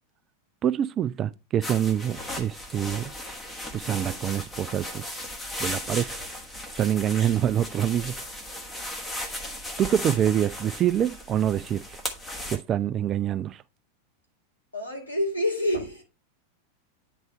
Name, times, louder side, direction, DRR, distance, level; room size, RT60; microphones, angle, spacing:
voice 1, 0.6-3.1 3.7-5.0 5.6-6.2 6.8-8.1 9.8-12.0 12.5-13.6, right 10 dB, 30° right, 0.3 m, -26 dB
sound 1, 1.6-12.6, left 1 dB, 10° left, 1.2 m, -36 dB
voice 2, 14.7-16.0, left 1 dB, 85° left, 2.0 m, -27 dB
9.2 x 3.4 x 4.2 m
figure-of-eight pair, 90°, 0 cm